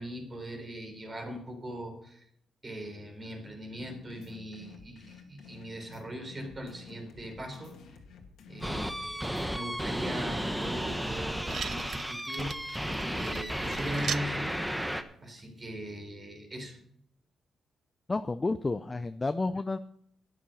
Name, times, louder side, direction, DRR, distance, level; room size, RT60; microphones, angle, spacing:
voice 1, 0.0-2.2 2.6-7.8 8.5-12.6 13.1-14.7 15.2-16.8, right 1 dB, 30° right, 3 dB, 4.0 m, -40 dB
sound 1, 3.8-9.6, left 6 dB, 80° left, 2.1 m, -51 dB
sound 2, 8.6-15.0, equal, 5° right, 1.0 m, -33 dB
sound 3, 11.4-14.3 15.3-15.4, right 7 dB, 60° right, 0.5 m, -40 dB
voice 2, 18.1-19.8, left 3 dB, 20° left, 12 dB, 0.5 m, -30 dB
12.0 x 10.5 x 5.5 m, 0.67 s
cardioid pair, 115°, 0 cm